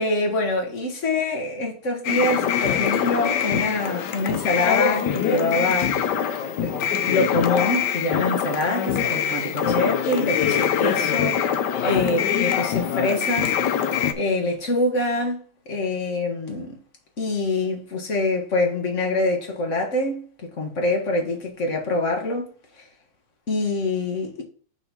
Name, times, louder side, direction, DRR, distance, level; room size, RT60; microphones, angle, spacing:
voice 1, 0.0-6.2 6.6-6.8 7.1-13.5 14.1-16.8 17.2-22.5 22.8-22.9 23.5-24.4, left 2 dB, 40° left, 1.8 m, -25 dB
sound 1, 2.0-14.1, left 8 dB, 70° left, 1.2 m, -23 dB
5.9 x 4.2 x 5.2 m
omnidirectional pair, 2.2 m